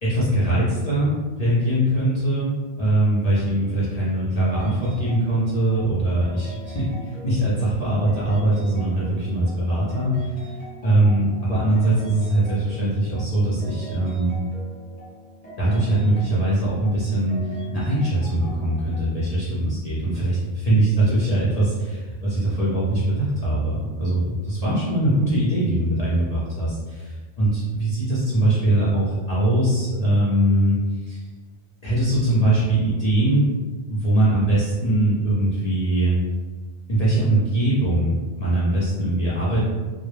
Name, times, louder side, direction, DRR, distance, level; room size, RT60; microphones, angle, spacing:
voice 1, 0.0-10.4 10.8-14.3 15.6-31.3 31.8-33.5 33.9-36.1 36.9-39.7, right 1 dB, 45° left, -9 dB, 0.5 m, -22 dB
sound 1, 4.4-19.1, equal, 10° left, 0.9 m, -42 dB
2.1 x 2.0 x 3.0 m, 1.4 s
omnidirectional pair, 1.1 m